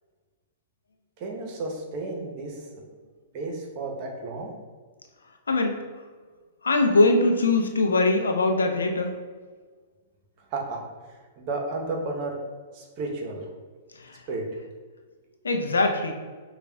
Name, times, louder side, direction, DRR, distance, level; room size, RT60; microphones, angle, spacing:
voice 1, 1.2-2.8 3.3-4.5 10.5-10.8 11.4-12.4 12.7-13.5 14.3-14.5, right 3 dB, 40° right, 1 dB, 0.8 m, -32 dB
voice 2, 6.6-9.2 14.0-14.2 15.4-16.1, left 2 dB, 80° left, 4 dB, 0.5 m, -22 dB
6.7 x 2.3 x 2.2 m, 1.4 s
hypercardioid pair, 110°, 0 cm